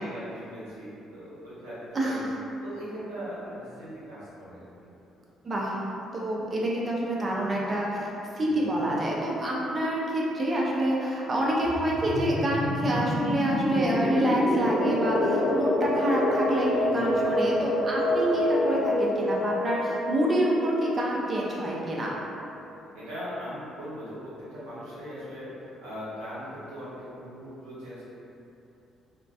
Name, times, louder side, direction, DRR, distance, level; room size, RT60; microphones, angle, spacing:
voice 1, 0.0-2.3 2.6-5.2 8.3-8.6 16.8-17.2 22.9-28.1, equal, 70° right, -11 dB, 0.7 m, -40 dB
voice 2, 5.4-5.8 6.1-22.2, right 1 dB, 35° right, -4 dB, 0.5 m, -27 dB
sound 1, 11.7-22.2, left 1 dB, 5° left, 0.8 m, -27 dB
2.3 x 2.1 x 2.4 m, 2.7 s
figure-of-eight pair, 45°, 0 cm